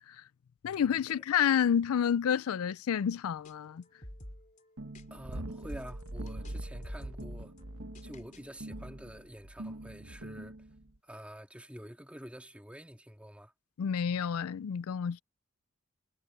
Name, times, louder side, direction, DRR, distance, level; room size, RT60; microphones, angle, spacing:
voice 1, 0.6-3.8 13.8-15.2, left 8 dB, 85° left, 0.4 m, -29 dB
sound 1, 3.5-3.6 3.8-5.0 5.3-6.6 6.8-8.4 8.7-9.2, equal, 35° left, 3.9 m, -50 dB
sound 2, 4.8-11.0, right 1 dB, 70° right, 1.6 m, -43 dB
voice 2, 5.1-7.5 8.0-10.6 11.0-13.5, equal, 5° right, 2.3 m, -48 dB
head